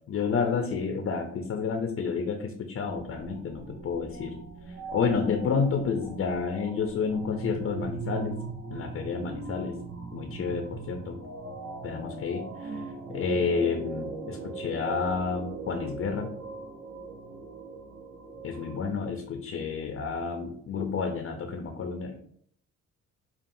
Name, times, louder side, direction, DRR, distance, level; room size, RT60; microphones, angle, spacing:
voice 1, 0.1-4.4 4.7-8.4 8.7-9.8 10.1-11.2 11.8-16.3 18.4-22.2, left 5 dB, 50° left, 4 dB, 0.6 m, -30 dB
sound 1, 2.8-18.8, right 3 dB, 45° right, 0.9 m, -40 dB
5.4 x 2.4 x 2.6 m, 0.63 s
cardioid pair, 90°, 30 cm